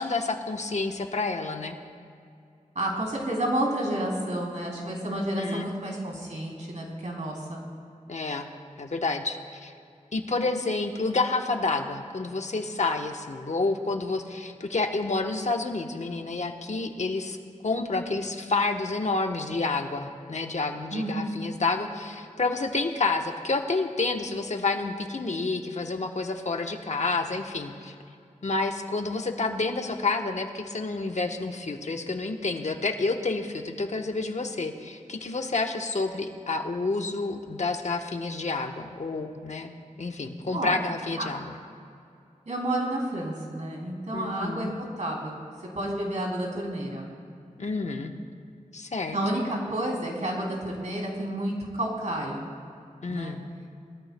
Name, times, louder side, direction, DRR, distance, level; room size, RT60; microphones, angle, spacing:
voice 1, 0.0-1.8 5.1-5.7 8.1-8.5 8.8-9.7 10.1-17.4 17.6-27.9 28.4-39.7 40.0-41.4 44.1-44.8 47.6-48.1 48.7-49.4 53.0-53.4, left 3 dB, 60° left, 4 dB, 1.1 m, -29 dB
voice 2, 2.7-7.7 20.9-21.3 40.5-40.8 41.2-41.3 42.5-44.7 45.0-45.4 45.7-47.1 49.1-52.5 53.1-53.3, right 1 dB, 65° right, -2 dB, 3.1 m, -30 dB
21.0 x 13.5 x 2.2 m, 2.5 s
cardioid pair, 45°, 13 cm